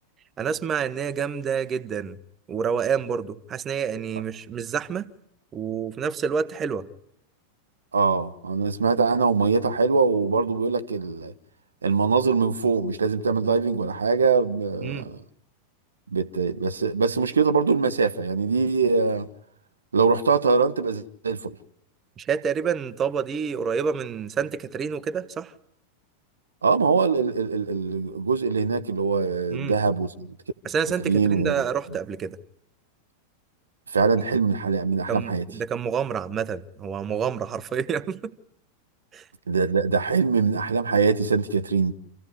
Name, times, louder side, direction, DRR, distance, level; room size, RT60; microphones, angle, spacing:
voice 1, 0.4-2.2 2.5-5.1 5.5-6.9 14.8-15.1 22.2-25.5 29.5-29.7 30.6-32.4 35.1-38.3 39.1-39.2, right 6 dB, 25° right, 1.2 m, -28 dB
voice 2, 7.9-11.3 11.8-15.2 16.1-19.3 19.9-21.6 26.6-30.3 31.0-31.5 33.9-35.4 39.5-41.9, right 4 dB, 75° right, 1.0 m, -23 dB
27.5 x 15.5 x 9.7 m
figure-of-eight pair, 90°, 0 cm